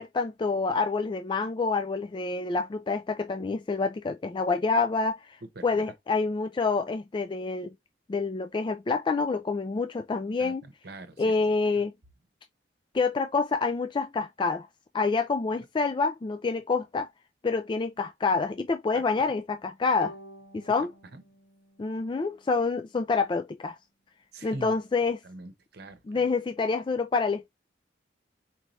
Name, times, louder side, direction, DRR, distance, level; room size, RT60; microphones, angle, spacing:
voice 1, 0.0-5.4 5.6-7.7 8.1-10.6 11.2-11.9 12.9-14.7 14.9-17.1 17.4-20.1 20.5-20.9 21.8-23.8 24.4-25.2 26.1-27.5, left 4 dB, 25° left, 0.3 m, -27 dB
voice 2, 10.4-11.3 18.9-19.0 21.1-21.2 24.3-24.8 25.2-26.0, right 2 dB, 60° right, 0.8 m, -43 dB
Bowed string instrument, 20.0-23.1, right 1 dB, 80° left, 1.1 m, -50 dB
4.6 x 2.7 x 3.1 m
head